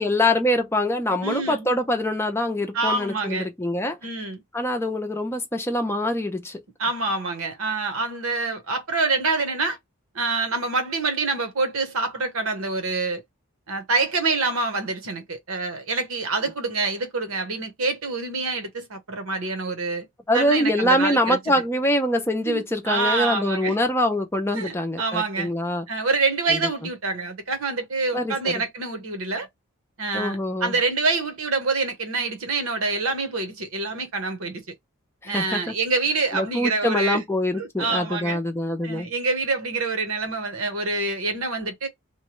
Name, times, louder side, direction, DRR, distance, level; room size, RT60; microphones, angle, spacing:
voice 1, 0.0-4.0 4.5-6.6 20.3-25.9 26.5-26.6 28.1-28.6 30.1-30.8 35.2-35.7 36.3-39.1, left 1 dB, 10° left, 0.5 m, -24 dB
voice 2, 1.2-1.6 2.7-3.5 4.0-4.4 6.8-9.8 10.1-13.2 13.7-20.1 20.3-21.4 22.5-23.8 24.5-25.5 25.9-29.5 30.0-34.7 35.2-37.2 37.6-38.4 38.8-41.9, right 3 dB, 70° right, 1.0 m, -26 dB
3.0 x 2.2 x 3.0 m
head